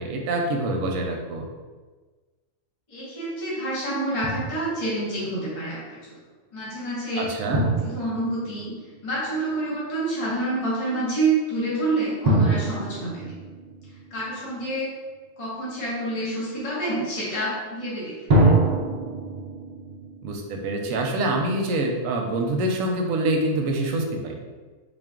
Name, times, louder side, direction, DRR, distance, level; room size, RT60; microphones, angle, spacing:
voice 1, 0.0-1.5 7.2-7.7 20.2-24.4, right 2 dB, 85° right, 2 dB, 1.0 m, -25 dB
voice 2, 2.9-6.2 6.5-7.3 7.8-8.7 9.0-13.3 14.1-14.9 15.4-18.5, right 2 dB, 30° left, -7 dB, 0.9 m, -28 dB
Drum, 4.2-5.0 7.5-9.3 12.2-14.7 18.3-21.4, right 2 dB, 55° right, 0.5 m, -25 dB
3.6 x 2.4 x 3.7 m, 1.4 s
omnidirectional pair, 1.3 m